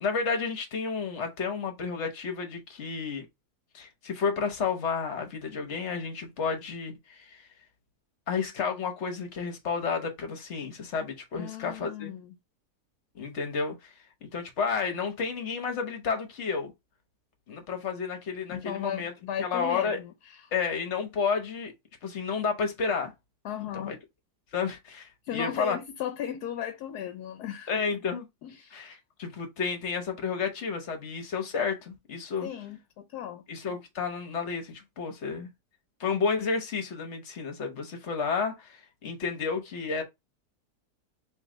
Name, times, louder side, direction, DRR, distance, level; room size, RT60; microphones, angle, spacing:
voice 1, 0.0-3.3 3.7-7.5 8.3-12.1 13.1-13.9 14.2-16.7 17.5-19.1 19.4-20.0 20.5-21.7 22.0-23.1 23.7-24.0 24.5-25.8 27.7-28.2 28.7-32.5 33.5-35.5 36.0-40.0, left 5 dB, 50° left, 1.0 m, -31 dB
voice 2, 11.4-12.3 18.5-20.5 23.4-24.0 25.2-27.7 28.4-29.0 32.4-33.4, left 10 dB, 75° left, 1.1 m, -36 dB
3.1 x 3.1 x 3.6 m
omnidirectional pair, 1.8 m